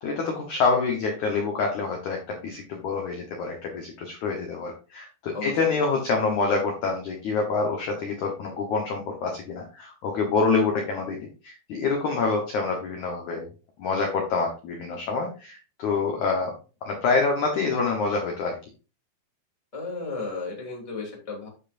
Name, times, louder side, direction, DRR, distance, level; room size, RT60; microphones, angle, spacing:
voice 1, 0.0-2.2 2.4-11.2 11.4-13.5 13.8-16.5 16.9-18.6, left 4 dB, 70° left, 2 dB, 1.9 m, -26 dB
voice 2, 5.3-5.8 19.7-21.5, left 3 dB, 10° left, -1 dB, 1.8 m, -34 dB
9.1 x 6.8 x 2.6 m, 0.33 s
omnidirectional pair, 4.9 m